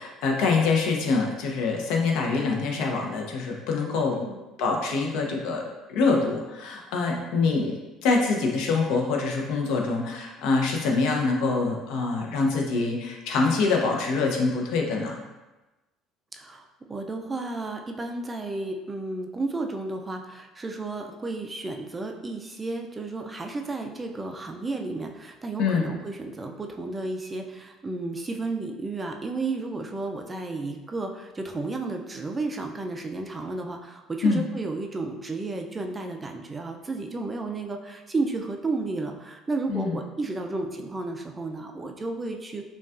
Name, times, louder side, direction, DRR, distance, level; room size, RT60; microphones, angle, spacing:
voice 1, 0.0-4.2 4.6-15.2 25.6-25.9 34.2-34.4 39.7-40.0, left 4 dB, 75° left, 1 dB, 0.7 m, -25 dB
voice 2, 16.3-42.6, right 3 dB, 20° right, 3 dB, 0.3 m, -32 dB
5.2 x 2.3 x 2.4 m, 1.1 s
cardioid pair, 125°, 0 cm